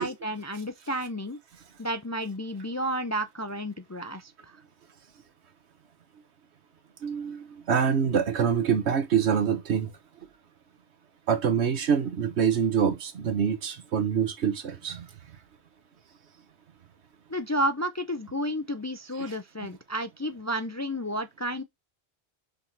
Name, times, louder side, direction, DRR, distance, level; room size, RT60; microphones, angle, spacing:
voice 1, 0.0-1.4 1.8-4.6 17.3-21.6, equal, 30° left, 0.3 m, -31 dB
voice 2, 7.0-9.9 11.3-15.1 19.2-19.3, right 7 dB, 90° right, 1.3 m, -25 dB
5.2 x 4.0 x 4.5 m
omnidirectional pair, 1.1 m